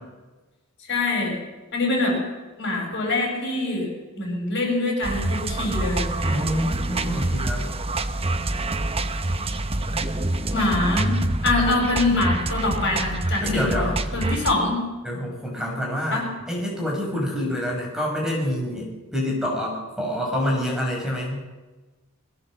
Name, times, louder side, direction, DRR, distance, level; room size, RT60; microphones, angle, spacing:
voice 1, 0.9-1.4 1.7-2.2 2.6-3.9 4.2-6.6 10.5-11.2 11.4-14.8 16.1-16.2, left 2 dB, 55° left, 0 dB, 7.2 m, -24 dB
sound 1, 5.0-14.5, right 2 dB, 25° right, 1.0 m, -26 dB
voice 2, 6.3-7.7 13.4-13.9 15.0-21.4, left 1 dB, 5° right, -2 dB, 5.7 m, -27 dB
21.5 x 16.5 x 7.6 m, 1.2 s
head